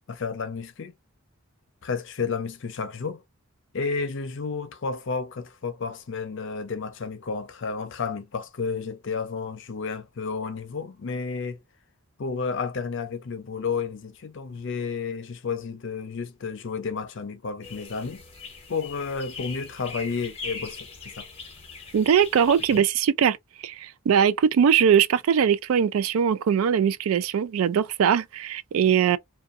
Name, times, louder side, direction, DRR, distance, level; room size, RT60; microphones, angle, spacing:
voice 1, 0.1-0.9 1.8-3.2 3.7-11.6 12.2-18.2 18.7-20.9 21.2-21.3, left 5 dB, 60° left, 0.5 m, -31 dB
sound 1, 17.6-22.8, left 4 dB, 30° left, 0.7 m, -41 dB
voice 2, 21.9-23.4 23.6-29.2, right 8 dB, 80° right, 0.3 m, -21 dB
2.6 x 2.2 x 2.4 m
head